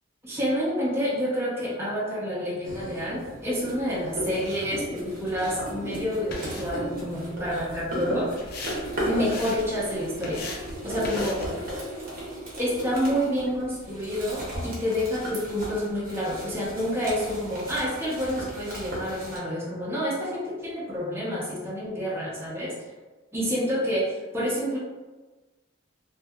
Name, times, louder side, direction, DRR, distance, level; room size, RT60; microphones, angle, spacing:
voice 1, 0.2-8.3 9.0-10.4 10.8-11.4 12.6-22.7 23.3-24.8, equal, 10° right, -7 dB, 0.6 m, -28 dB
sound 1, 2.6-19.4, right 1 dB, 45° right, 0.7 m, -36 dB
sound 2, 5.6-11.7, left 2 dB, 50° left, 0.4 m, -40 dB
2.7 x 2.2 x 2.2 m, 1.2 s
head